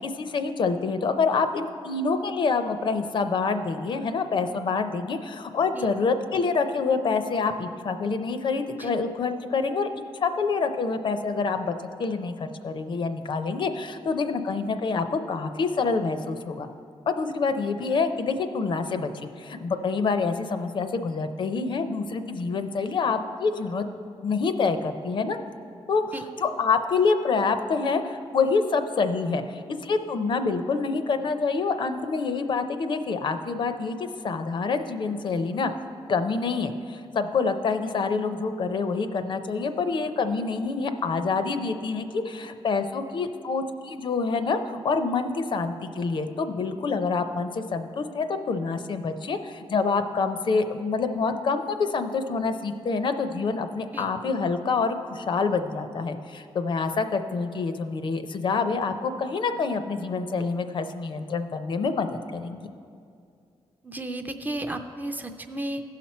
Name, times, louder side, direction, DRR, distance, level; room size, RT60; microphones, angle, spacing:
voice 1, 0.0-11.7 12.0-16.7 17.1-19.1 19.4-23.8 24.2-25.4 25.9-26.1 26.4-35.7 36.1-62.6, left 4 dB, 50° left, 8 dB, 0.5 m, -27 dB
voice 2, 63.8-65.8, right 1 dB, 15° right, 6 dB, 0.4 m, -33 dB
15.5 x 5.8 x 4.3 m, 2.4 s
wide cardioid pair, 160°, 10 cm